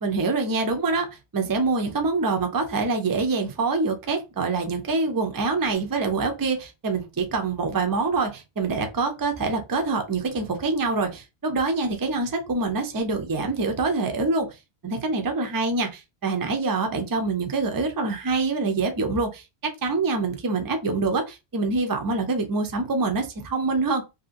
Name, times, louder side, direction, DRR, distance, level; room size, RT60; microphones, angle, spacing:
voice 1, 0.0-14.6 14.8-24.0, right 3 dB, 30° right, 0.4 m, -25 dB
2.7 x 2.6 x 2.6 m
omnidirectional pair, 1.1 m